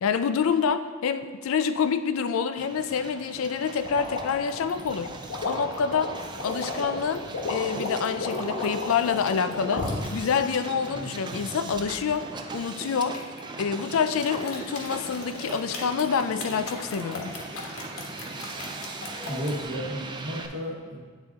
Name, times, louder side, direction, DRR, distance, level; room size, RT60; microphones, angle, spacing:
voice 1, 0.0-5.1 5.5-6.1 6.4-9.9 10.1-12.3 12.5-13.2 13.6-17.3, left 6 dB, 70° left, 11 dB, 0.4 m, -27 dB
Hiss, 2.6-20.5, right 3 dB, 20° right, 0.4 m, -40 dB
sound 1, 3.8-10.1 10.7-12.0 13.1-13.7 14.1-19.6, left 2 dB, 85° left, 1.1 m, -34 dB
voice 2, 19.3-21.0, equal, 55° right, -1 dB, 1.0 m, -33 dB
9.2 x 3.7 x 3.5 m, 1.5 s
head